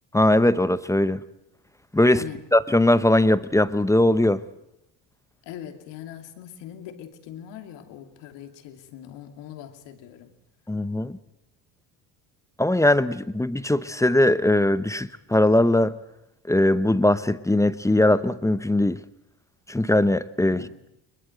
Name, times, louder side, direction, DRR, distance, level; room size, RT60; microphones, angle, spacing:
voice 1, 0.1-1.2 1.9-2.2 2.5-4.4 10.7-11.2 12.6-15.9 16.5-19.0 19.7-20.9, left 1 dB, 5° left, 0.8 m, -20 dB
voice 2, 2.1-2.5 5.4-10.3 20.4-20.7, left 10 dB, 70° left, 2.9 m, -41 dB
22.0 x 21.5 x 7.9 m
supercardioid pair, 90°, 44 cm